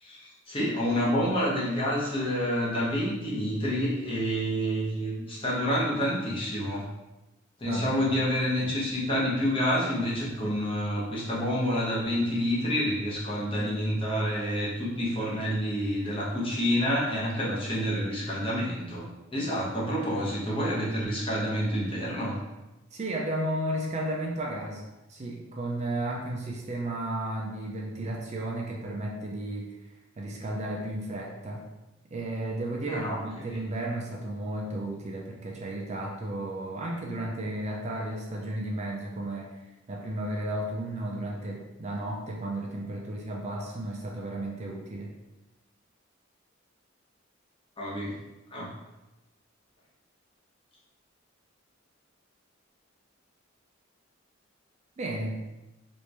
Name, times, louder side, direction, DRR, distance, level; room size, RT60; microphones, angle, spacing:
voice 1, 0.0-6.8 7.6-19.0 19.3-22.4 32.8-33.2 47.8-48.1 48.5-48.7, equal, 25° left, -6 dB, 0.9 m, -28 dB
voice 2, 7.6-8.0 22.9-24.8 25.1-29.8 30.2-31.7 32.1-39.6 39.9-45.1 55.0-55.4, right 1 dB, 35° right, -1 dB, 0.4 m, -33 dB
3.0 x 2.6 x 3.2 m, 1.0 s
head